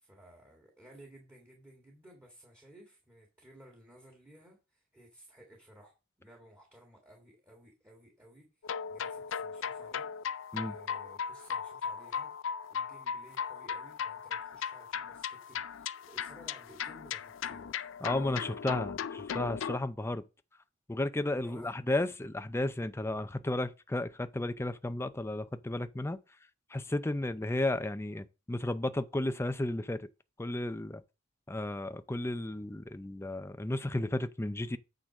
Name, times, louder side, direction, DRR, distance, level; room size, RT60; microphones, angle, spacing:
voice 1, 0.0-10.1 10.6-12.3 12.7-18.4 21.4-21.8, right 1 dB, 10° right, 1.8 m, -57 dB
sound 1, 8.6-19.8, left 7 dB, 70° left, 0.4 m, -37 dB
voice 2, 18.0-20.2 20.9-26.2 26.7-30.1 30.4-31.0 31.5-34.8, left 1 dB, 15° left, 0.5 m, -33 dB
8.7 x 3.9 x 6.0 m
head